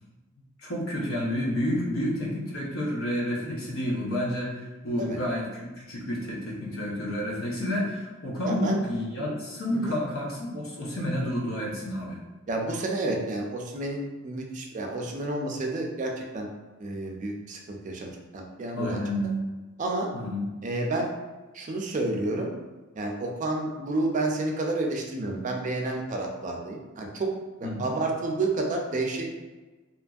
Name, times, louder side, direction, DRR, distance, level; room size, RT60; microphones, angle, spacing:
voice 1, 0.6-12.2 18.7-19.4 20.1-20.5 27.6-27.9, equal, 80° left, -3 dB, 0.8 m, -30 dB
voice 2, 8.4-8.8 9.7-10.0 12.5-16.5 16.8-19.0 19.8-20.1 20.6-21.1 21.5-22.5 23.0-27.3 27.6-29.3, right 2 dB, 40° right, 1 dB, 0.4 m, -30 dB
2.9 x 2.5 x 2.3 m, 1.2 s
head